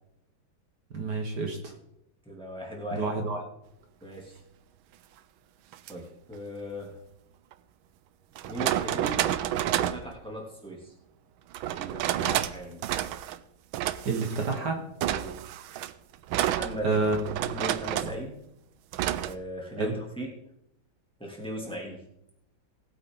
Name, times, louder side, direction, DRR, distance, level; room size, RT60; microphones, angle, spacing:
voice 1, 0.9-1.7 2.9-3.4 12.2-12.4 14.1-14.8 16.8-17.3 18.0-18.1 19.8-19.9, right 3 dB, 60° right, 3 dB, 2.0 m, -29 dB
voice 2, 2.2-3.1 4.0-4.4 5.9-7.0 8.5-9.3 9.6-10.9 11.7-12.9 15.1-15.4 16.5-17.0 17.4-18.4 19.1-20.3 21.2-22.0, equal, 5° left, -2 dB, 2.6 m, -38 dB
sound 1, 5.7-5.9 7.5-7.6 8.4-10.1 11.5-12.6 12.8-13.4 13.7-14.6 15.0-18.2 18.9-19.3, right 12 dB, 90° right, 1.4 m, -30 dB
19.0 x 8.6 x 3.8 m, 0.81 s
omnidirectional pair, 2.1 m